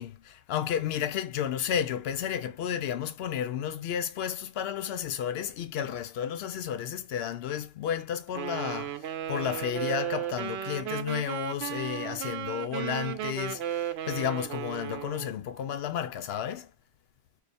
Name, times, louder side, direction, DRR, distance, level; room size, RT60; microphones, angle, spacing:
voice 1, 0.0-16.7, left 9 dB, 75° left, 0.8 m, -32 dB
Wind instrument woodwind instrument, 8.4-15.3, right 11 dB, 80° right, 0.8 m, -35 dB
3.3 x 2.3 x 4.1 m
omnidirectional pair, 1.1 m